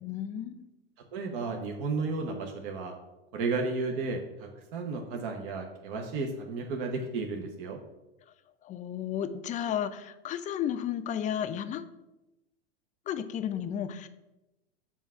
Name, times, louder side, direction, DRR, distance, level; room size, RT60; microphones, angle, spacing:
voice 1, 0.0-0.6 8.6-11.8 13.1-14.1, left 9 dB, 25° left, 11 dB, 0.4 m, -33 dB
voice 2, 1.1-2.9 3.3-7.8, right 3 dB, 55° right, 2 dB, 0.9 m, -33 dB
7.2 x 2.4 x 5.6 m, 0.98 s
hypercardioid pair, 105°, 31 cm